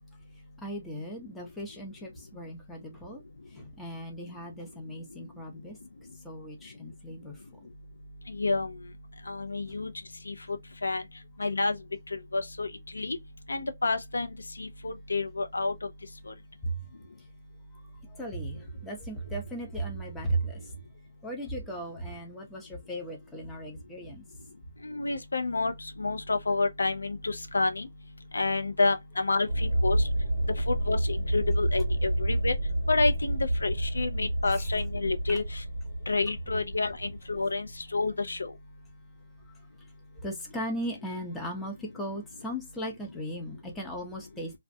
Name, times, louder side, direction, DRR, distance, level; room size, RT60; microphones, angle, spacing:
voice 1, 0.6-3.2 3.5-5.8 6.2-7.4 16.6-16.8 18.1-20.7 21.2-24.2 34.5-34.6 40.2-44.5, right 1 dB, 5° left, 0.6 m, -37 dB
voice 2, 8.3-8.7 9.3-9.9 10.3-10.4 10.8-11.0 11.4-11.8 12.3-12.7 12.9-13.2 13.5-14.3 14.6-15.7 24.8-25.7 26.0-27.9 28.3-30.0 30.7-32.5 32.9-35.4 36.1-38.5, left 3 dB, 85° left, 0.5 m, -29 dB
sound 1, 29.5-37.7, right 1 dB, 65° right, 0.8 m, -29 dB
2.4 x 2.1 x 2.5 m
hypercardioid pair, 160°, 0 cm